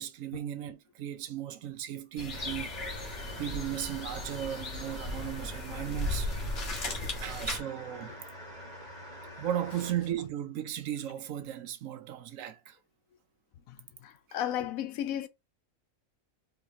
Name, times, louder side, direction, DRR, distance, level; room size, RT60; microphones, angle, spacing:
voice 1, 0.0-2.7 3.4-6.3 7.1-8.1 9.4-12.8, right 11 dB, 75° right, 1.0 m, -36 dB
sound 1, 2.2-7.6, left 2 dB, 45° left, 1.5 m, -36 dB
sound 2, 2.3-9.9, equal, 30° right, 1.4 m, -46 dB
voice 2, 14.0-15.3, left 11 dB, 80° left, 1.1 m, -34 dB
4.6 x 3.2 x 2.7 m
omnidirectional pair, 1.4 m